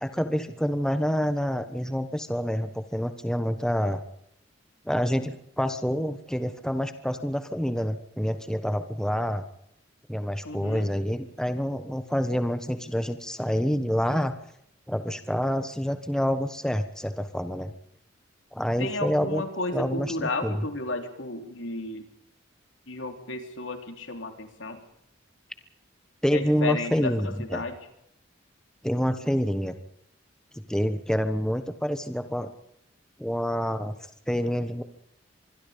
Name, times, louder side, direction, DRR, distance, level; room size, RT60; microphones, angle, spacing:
voice 1, 0.0-4.0 4.8-9.4 10.1-14.3 14.9-17.7 18.5-19.4 19.7-20.5 26.2-27.6 28.8-29.7 30.7-32.5 33.2-33.9 34.3-34.8, equal, 5° left, 9 dB, 1.3 m, -27 dB
voice 2, 10.4-10.9 18.8-22.1 22.9-24.8 26.3-27.8, left 2 dB, 70° left, 6 dB, 3.8 m, -33 dB
25.5 x 21.5 x 5.3 m, 0.76 s
head